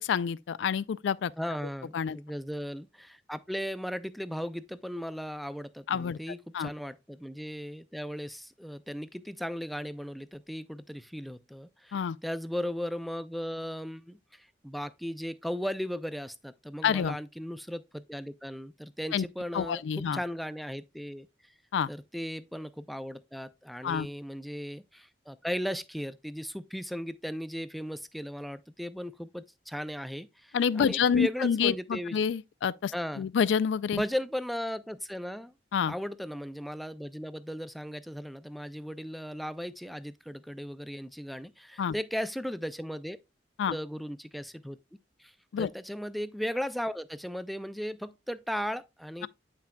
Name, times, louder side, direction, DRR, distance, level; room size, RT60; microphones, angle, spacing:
voice 1, 0.0-1.3 1.9-2.2 5.9-6.2 6.5-6.7 11.9-12.2 16.8-17.2 19.1-19.2 19.5-20.2 21.7-21.9 23.8-24.1 30.5-34.0 35.7-35.9 41.8-41.9 43.6-43.7 45.5-45.7, left 7 dB, 85° left, 0.3 m, -28 dB
voice 2, 1.4-21.5 21.9-32.2 32.9-33.3 33.9-35.5 35.9-43.2 43.7-44.8 45.2-49.3, equal, ahead, 0.4 m, -37 dB
8.8 x 5.8 x 2.2 m
head